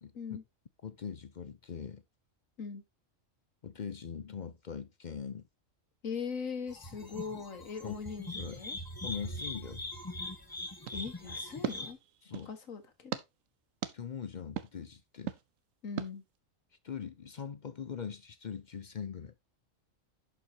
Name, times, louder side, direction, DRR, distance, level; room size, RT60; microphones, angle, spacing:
voice 1, 0.0-0.4 0.8-2.0 3.6-5.5 7.8-8.0 8.4-8.6 9.0-9.8 12.2-12.5 13.9-15.4 16.8-19.3, left 7 dB, 50° left, 0.6 m, -41 dB
voice 2, 6.0-8.8 10.9-12.0 12.5-13.2 15.8-16.2, left 5 dB, 85° left, 1.8 m, -40 dB
sound 1, 6.7-11.9, left 1 dB, 15° left, 1.3 m, -42 dB
sound 2, 10.8-12.6 13.1-13.2 13.8-13.9 14.6-14.7 15.3-15.4 16.0-16.1, right 9 dB, 90° right, 1.2 m, -39 dB
11.0 x 5.5 x 2.8 m
omnidirectional pair, 1.3 m